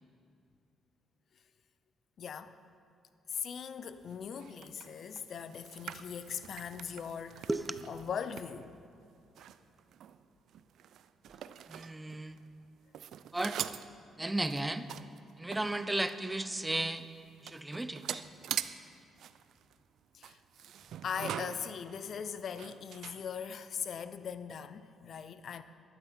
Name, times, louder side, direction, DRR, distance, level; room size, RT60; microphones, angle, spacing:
voice 1, 2.2-2.6 3.3-7.5 7.9-8.8 20.1-20.4 21.0-25.6, left 7 dB, 60° left, 0.5 m, -40 dB
sound 1, 4.1-12.7 12.9-16.3 16.7-16.8 17.0-23.7, right 10 dB, 75° right, 0.4 m, -44 dB
voice 2, 7.5-7.8 11.7-12.4 13.3-13.6 14.2-14.9 15.4-17.0 17.4-18.2, right 2 dB, 10° right, 0.5 m, -34 dB
12.5 x 11.5 x 4.3 m
cardioid pair, 90°, 0 cm